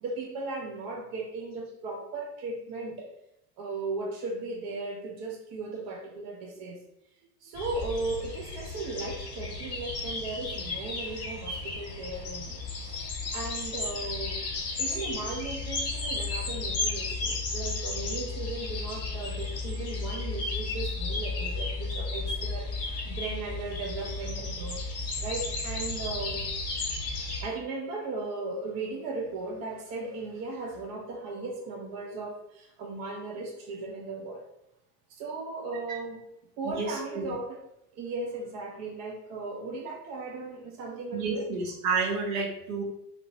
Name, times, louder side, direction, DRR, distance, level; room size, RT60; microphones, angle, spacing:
voice 1, 0.0-3.1 3.6-6.8 7.4-14.5 14.8-26.4 27.4-34.5 35.1-36.2 36.6-37.6 37.9-41.5, right 3 dB, 35° right, 1 dB, 0.4 m, -37 dB
sound 1, 7.5-27.4, left 3 dB, 30° left, 0.7 m, -34 dB
voice 2, 36.6-37.2 41.1-42.8, right 4 dB, 55° right, -2 dB, 0.9 m, -30 dB
2.5 x 2.0 x 2.6 m, 0.80 s
figure-of-eight pair, 70°, 48 cm